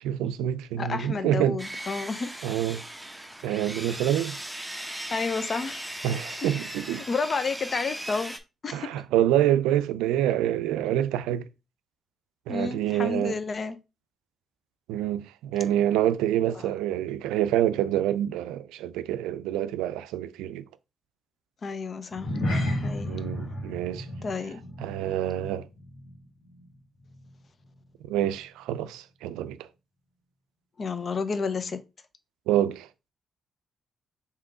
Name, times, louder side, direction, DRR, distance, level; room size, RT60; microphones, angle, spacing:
voice 1, 0.0-1.6 2.4-2.8 3.4-4.4 6.0-7.0 8.7-11.5 12.5-13.3 14.9-20.6 23.1-24.1 24.8-25.7 28.1-29.7 32.5-32.9, right 11 dB, 90° right, 0.3 m, -27 dB
voice 2, 0.8-2.4 5.1-5.9 6.9-8.3 8.6-8.9 12.5-13.8 16.6-16.7 21.6-22.4 22.8-23.1 24.2-24.6 30.8-31.8, left 4 dB, 50° left, 0.7 m, -31 dB
Sawing, 1.6-8.4, right 1 dB, 5° right, 0.9 m, -38 dB
sound 1, 22.1-26.7 27.0-27.3 27.8-27.9, left 1 dB, 70° left, 1.6 m, -33 dB
3.6 x 2.8 x 4.8 m
supercardioid pair, 50°, 0 cm